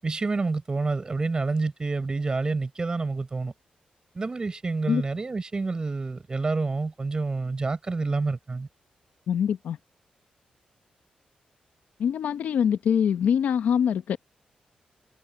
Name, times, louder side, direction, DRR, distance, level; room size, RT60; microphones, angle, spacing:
voice 1, 0.0-3.5 4.1-8.7, right 3 dB, 30° right, 5.7 m, -28 dB
voice 2, 9.3-9.8 12.0-14.2, left 8 dB, 85° left, 0.9 m, -24 dB
cardioid pair, 100°, 3 cm